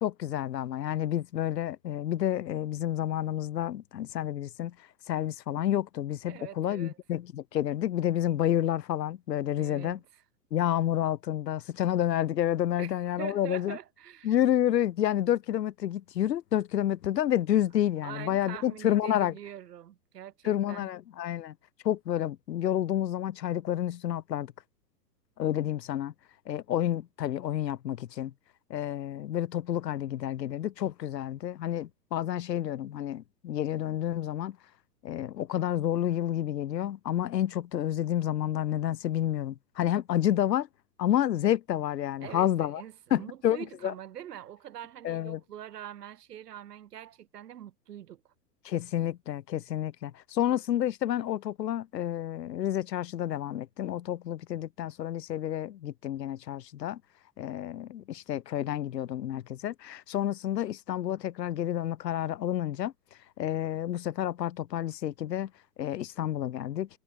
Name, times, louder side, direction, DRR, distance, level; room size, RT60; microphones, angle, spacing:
voice 1, 0.0-4.7 5.1-10.0 10.5-13.8 14.2-19.3 20.4-21.5 21.8-24.5 25.4-26.1 26.5-28.3 28.7-34.6 35.0-40.7 41.0-42.8 43.1-43.9 45.0-45.4 48.6-57.0 57.4-62.9 63.4-65.5 65.8-66.9, left 11 dB, 80° left, 0.8 m, -29 dB
voice 2, 6.3-7.0 9.6-10.2 12.8-14.4 18.0-20.9 42.2-48.2, right 11 dB, 75° right, 1.8 m, -44 dB
hypercardioid pair, 110°, 48 cm